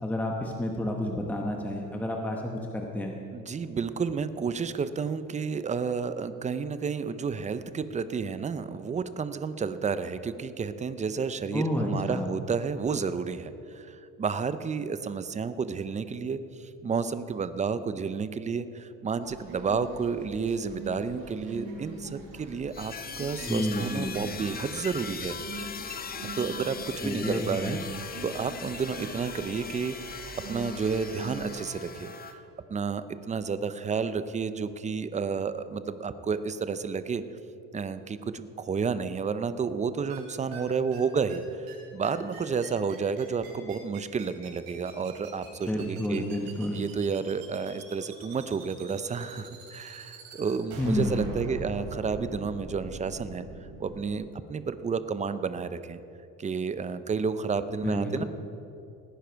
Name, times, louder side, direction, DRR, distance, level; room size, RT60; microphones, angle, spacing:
voice 1, 0.0-3.1 11.5-12.3 23.5-24.1 27.0-27.8 45.7-46.8 50.8-51.3 57.8-58.2, left 1 dB, 5° left, 1 dB, 1.0 m, -30 dB
voice 2, 3.3-25.4 26.4-32.4 32.7-37.2 37.7-41.4 41.9-46.3 46.7-53.4 53.8-56.0 56.4-58.2, right 5 dB, 20° right, 12 dB, 0.5 m, -31 dB
sound 1, 19.2-31.5, right 3 dB, 70° right, 3.8 m, -44 dB
sound 2, 22.7-32.3, left 5 dB, 25° left, 0.8 m, -40 dB
sound 3, 40.1-40.2 40.5-40.6 40.9-41.0 41.3-41.4 41.7-41.8 42.0-54.1, right 3 dB, 90° right, 3.7 m, -42 dB
17.5 x 10.5 x 4.6 m, 2.8 s
cardioid pair, 125°, 35 cm